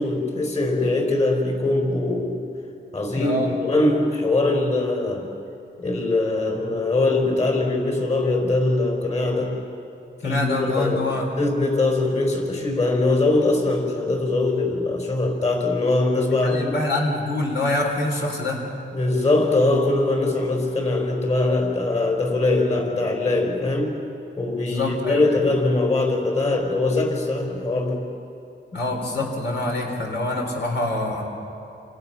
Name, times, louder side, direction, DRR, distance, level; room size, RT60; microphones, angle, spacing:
voice 1, 0.0-2.4 2.9-5.3 5.8-9.6 10.2-11.0 11.4-16.7 18.9-24.0 24.4-28.0, left 2 dB, 35° left, 3 dB, 4.6 m, -22 dB
voice 2, 3.2-3.5 10.2-11.3 16.4-18.6 24.7-25.2 28.7-31.3, left 2 dB, 70° left, 0 dB, 3.8 m, -25 dB
29.0 x 28.0 x 5.9 m, 2.7 s
wide cardioid pair, 145°, 20 cm